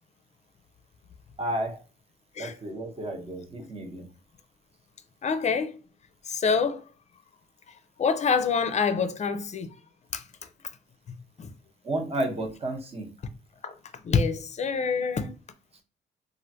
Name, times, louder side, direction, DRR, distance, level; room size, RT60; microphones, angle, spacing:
voice 1, 1.4-1.8 2.4-4.1 11.8-13.1, right 1 dB, 30° right, 0.9 m, -32 dB
voice 2, 5.2-5.7 6.2-6.8 8.0-9.7 10.1-10.2 11.4-11.5 13.6-13.7 14.0-15.3, left 5 dB, 35° left, 0.5 m, -26 dB
3.1 x 2.4 x 2.7 m
cardioid pair, 90°, 20 cm